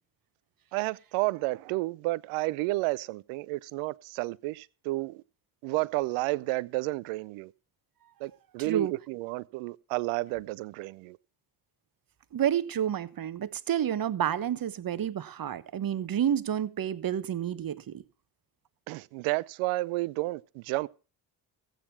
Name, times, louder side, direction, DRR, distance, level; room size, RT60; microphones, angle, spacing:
voice 1, 0.7-5.2 5.6-7.5 8.2-11.2 18.9-20.9, right 21 dB, 75° right, 0.6 m, -31 dB
voice 2, 8.6-8.9 12.3-18.0, right 10 dB, 45° right, 1.1 m, -29 dB
14.5 x 9.1 x 4.5 m
hypercardioid pair, 45°, 50 cm